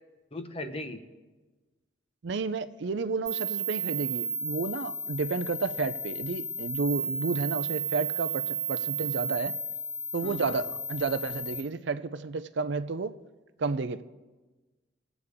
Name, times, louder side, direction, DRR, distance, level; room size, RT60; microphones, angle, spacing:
voice 1, 0.3-1.0 10.2-10.6, left 1 dB, 30° left, 0.8 m, -38 dB
voice 2, 2.2-9.6 10.1-13.1 13.6-14.0, right 4 dB, 60° right, 0.4 m, -31 dB
sound 1, 3.3-11.6, right 3 dB, 5° left, 1.3 m, -33 dB
22.5 x 8.1 x 3.6 m
head